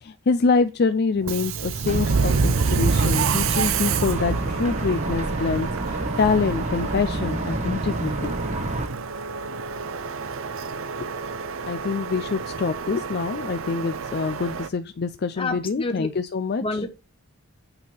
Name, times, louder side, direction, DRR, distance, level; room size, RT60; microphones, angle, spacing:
voice 1, 0.0-8.3 11.0-11.1 11.7-16.8, left 4 dB, 50° left, 0.4 m, -25 dB
Subway metro underground, 1.2-14.7, right 5 dB, 70° right, 0.6 m, -28 dB
sound 1, 1.9-8.9, right 2 dB, 30° right, 1.0 m, -29 dB
voice 2, 15.4-16.1 16.6-16.9, left 2 dB, 25° left, 1.1 m, -28 dB
8.9 x 3.6 x 5.8 m
head